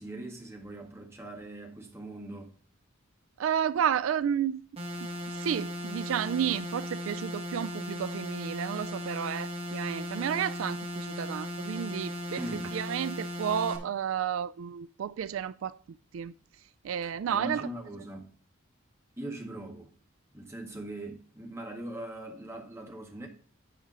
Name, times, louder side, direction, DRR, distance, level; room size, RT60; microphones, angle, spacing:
voice 1, 0.0-2.5 12.4-12.8 17.3-18.3 19.2-19.9 20.3-23.3, right 1 dB, 15° right, 1.6 m, -41 dB
voice 2, 3.4-4.6 5.3-16.3 16.8-17.7, right 8 dB, 75° right, 0.3 m, -32 dB
sound 1, 4.8-13.8, left 1 dB, 30° right, 1.9 m, -37 dB
9.4 x 4.9 x 5.5 m
head